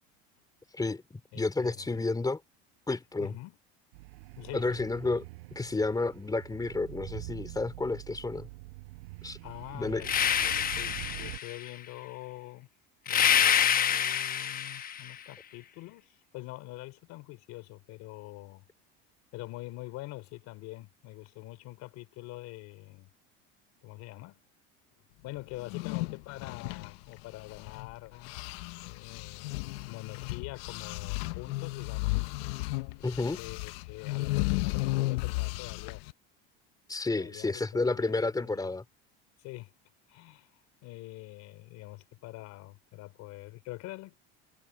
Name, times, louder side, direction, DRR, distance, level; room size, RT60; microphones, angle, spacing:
voice 1, 0.7-2.4 2.9-3.3 4.5-5.2 5.5-8.5 9.2-9.4 9.7-10.1 33.0-33.4 36.9-38.8, left 3 dB, 10° left, 4.2 m, -31 dB
voice 2, 1.3-2.1 2.9-3.6 4.4-4.8 9.4-12.7 13.1-18.6 19.3-23.1 23.8-24.4 25.2-28.3 28.8-32.2 33.3-36.0 37.1-38.8 39.4-39.7 40.1-40.5 40.8-44.2, left 19 dB, 65° left, 4.5 m, -45 dB
sound 1, 3.9-11.4, right 23 dB, 90° right, 4.8 m, -45 dB
sound 2, 10.0-11.7 13.1-15.1, left 9 dB, 30° left, 0.9 m, -26 dB
sound 3, 25.5-27.9 28.2-36.1, left 21 dB, 85° left, 0.9 m, -34 dB
supercardioid pair, 120°, 30 cm